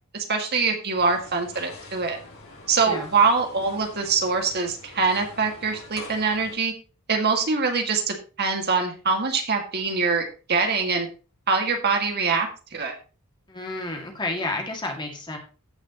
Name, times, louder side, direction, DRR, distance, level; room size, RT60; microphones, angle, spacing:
voice 1, 0.1-2.2 2.7-6.7 7.1-11.1 11.5-12.9, right 4 dB, 50° right, 3 dB, 2.1 m, -24 dB
sound 1, 0.9-6.6, left 2 dB, 70° left, 4.5 m, -45 dB
voice 2, 13.5-15.4, left 2 dB, 20° left, 2 dB, 2.2 m, -31 dB
15.5 x 6.3 x 3.0 m, 0.34 s
head